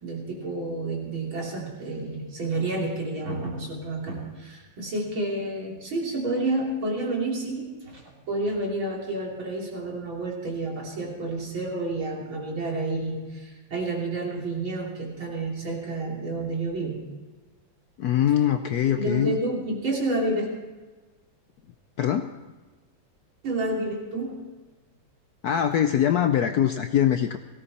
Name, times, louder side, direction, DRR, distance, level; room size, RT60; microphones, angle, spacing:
voice 1, 0.0-17.1 18.9-20.5 23.4-24.4, right 2 dB, 80° right, -2 dB, 4.0 m, -30 dB
voice 2, 18.0-19.4 22.0-22.3 25.4-27.4, left 10 dB, 70° left, 8 dB, 0.9 m, -23 dB
18.0 x 16.5 x 4.2 m, 1.3 s
omnidirectional pair, 2.2 m